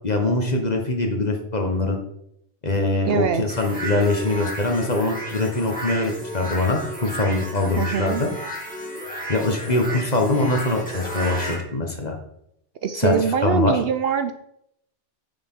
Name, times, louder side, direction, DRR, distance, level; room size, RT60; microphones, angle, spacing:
voice 1, 0.0-2.0 2.6-8.3 9.3-12.1 12.9-13.8, left 2 dB, 35° left, 3 dB, 1.4 m, -23 dB
voice 2, 3.0-3.4 7.8-8.2 12.8-14.3, right 7 dB, 60° right, 9 dB, 0.8 m, -23 dB
sound 1, 3.5-11.6, right 1 dB, 5° left, 2.4 m, -33 dB
9.5 x 7.2 x 3.8 m, 0.76 s
omnidirectional pair, 1.2 m